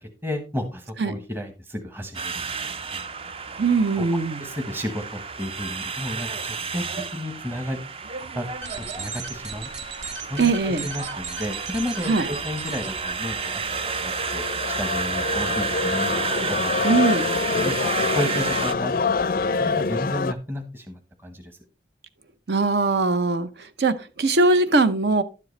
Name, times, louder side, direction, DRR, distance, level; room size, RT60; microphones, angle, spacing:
voice 1, 0.0-3.0 4.0-4.1 4.4-7.8 8.3-8.5 8.9-9.7 10.3-13.6 14.0-17.0 17.6-21.6, left 1 dB, 15° right, 1.0 m, -33 dB
sound 1, 2.1-18.7, right 5 dB, 30° right, 0.5 m, -31 dB
voice 2, 3.6-4.5 10.4-10.9 12.1-12.3 16.8-17.3 22.5-25.2, right 3 dB, 70° right, 0.7 m, -21 dB
sound 2, 8.5-13.6, right 4 dB, 90° right, 1.5 m, -37 dB
sound 3, 13.1-20.3, left 4 dB, 50° left, 0.4 m, -26 dB
11.5 x 7.6 x 3.2 m
head